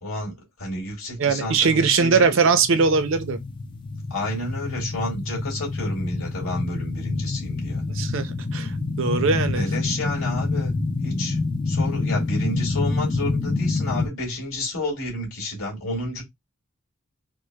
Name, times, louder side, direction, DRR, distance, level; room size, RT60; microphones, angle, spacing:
voice 1, 0.0-2.3 4.1-7.8 9.6-10.8 11.0-11.4 11.7-16.2, left 1 dB, 70° left, 2.0 m, -30 dB
voice 2, 1.2-3.4 7.9-9.6, right 5 dB, 60° right, 0.6 m, -21 dB
sound 1, 2.2-14.1, left 3 dB, 25° left, 0.4 m, -27 dB
4.4 x 2.1 x 2.2 m
head